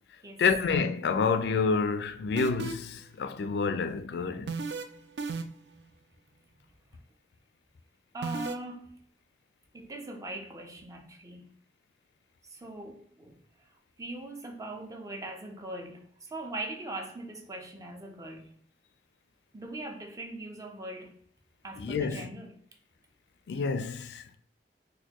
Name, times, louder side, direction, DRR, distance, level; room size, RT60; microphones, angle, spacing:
voice 1, 0.4-4.5 21.8-22.3 23.5-24.4, left 5 dB, 70° left, 0.3 m, -28 dB
sound 1, 2.4-3.0 4.5-4.8 5.2-5.7 8.2-8.5, right 4 dB, 70° right, 0.4 m, -34 dB
voice 2, 8.1-8.9 9.7-11.5 12.5-13.4 14.0-18.5 19.5-21.2 21.6-22.6, right 2 dB, 20° right, 0.5 m, -41 dB
4.2 x 2.2 x 2.9 m
head